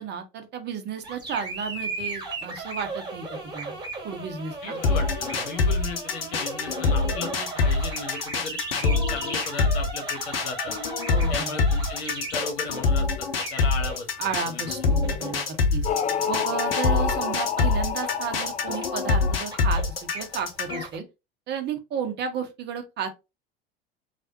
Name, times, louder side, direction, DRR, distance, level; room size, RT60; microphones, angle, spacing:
voice 1, 0.0-3.8 4.0-4.8 11.1-11.5 14.2-15.4 15.7-15.9 16.3-21.0 21.5-23.1, right 6 dB, 35° right, 0.8 m, -33 dB
sound 1, 1.0-21.0, right 3 dB, 15° right, 1.4 m, -37 dB
voice 2, 4.6-10.8 11.3-14.9, left 3 dB, 60° left, 1.3 m, -36 dB
sound 2, 4.8-20.8, left 4 dB, 75° left, 0.7 m, -25 dB
sound 3, 15.8-20.1, left 7 dB, 25° left, 0.5 m, -29 dB
3.3 x 2.4 x 2.7 m
figure-of-eight pair, 70°, 29 cm